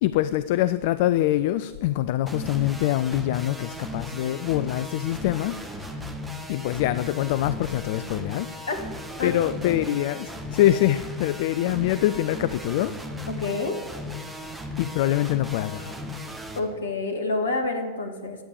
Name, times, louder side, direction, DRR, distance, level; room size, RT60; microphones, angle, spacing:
voice 1, 0.0-6.0 6.5-8.5 9.2-12.9 14.8-16.1, left 14 dB, 50° left, 14 dB, 0.3 m, -24 dB
sound 1, 2.3-16.6, left 1 dB, 10° right, 1.4 m, -36 dB
voice 2, 13.3-13.8 16.6-18.4, left 3 dB, 65° left, 5 dB, 1.7 m, -28 dB
12.0 x 8.4 x 6.9 m, 1.5 s
figure-of-eight pair, 90°, 0 cm